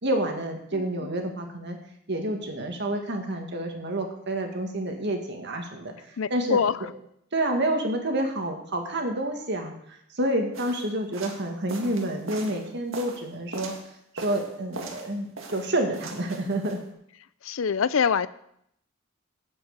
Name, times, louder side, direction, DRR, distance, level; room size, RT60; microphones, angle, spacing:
voice 1, 0.0-1.8 2.1-5.9 6.3-6.6 7.3-9.7 10.1-13.7 14.1-16.8, right 1 dB, 60° right, 3 dB, 2.0 m, -28 dB
voice 2, 6.2-6.8 17.4-18.3, left 6 dB, 90° left, 17 dB, 0.5 m, -24 dB
sound 1, 10.5-13.9 14.2-15.1 15.4-16.8, right 3 dB, 90° right, 1.9 m, -40 dB
8.4 x 8.3 x 8.1 m, 0.75 s
head